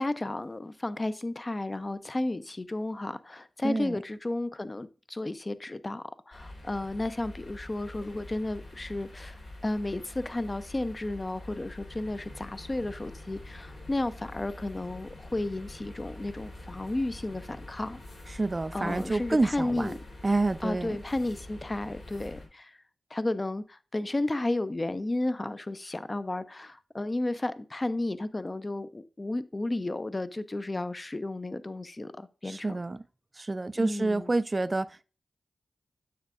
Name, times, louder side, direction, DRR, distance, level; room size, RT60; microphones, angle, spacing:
voice 1, 0.0-9.4 9.6-18.0 18.7-20.0 20.6-22.8 23.1-32.8 33.8-34.3, left 2 dB, 30° left, 0.4 m, -33 dB
voice 2, 3.6-4.0 18.3-19.9 20.2-21.0 32.4-33.0 33.4-35.1, right 2 dB, 30° right, 0.3 m, -28 dB
sound 1, 6.3-22.5, left 2 dB, 85° left, 3.3 m, -46 dB
9.4 x 6.6 x 2.5 m
cardioid pair, 60°, 0 cm